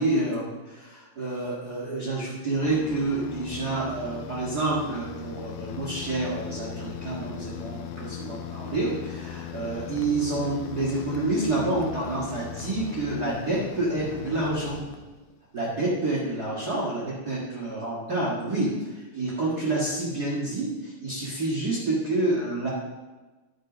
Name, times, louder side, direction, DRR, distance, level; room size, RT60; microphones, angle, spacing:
voice 1, 0.0-14.8 15.5-22.7, right 2 dB, 75° right, -7 dB, 0.8 m, -28 dB
sound 1, 2.6-15.4, left 9 dB, 80° left, 2.2 m, -38 dB
10.5 x 6.6 x 5.0 m, 1.2 s
omnidirectional pair, 5.1 m